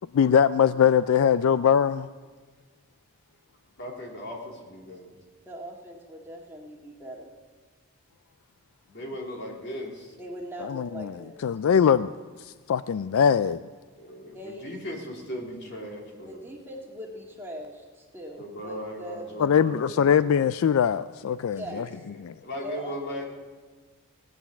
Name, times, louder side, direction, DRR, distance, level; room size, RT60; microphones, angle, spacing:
voice 1, 0.1-2.1 10.6-11.1 11.4-12.1 12.4-13.6 19.4-21.8 22.2-22.3, left 7 dB, 75° left, 0.3 m, -22 dB
voice 2, 3.8-5.1 8.9-10.2 14.0-16.4 18.4-20.3 21.7-22.0 22.4-23.3, equal, 50° left, 3.1 m, -38 dB
voice 3, 5.4-7.3 10.2-11.4 14.3-14.8 16.3-19.3 21.5-22.0 22.6-23.2, equal, 10° right, 1.8 m, -40 dB
18.0 x 9.3 x 7.1 m
head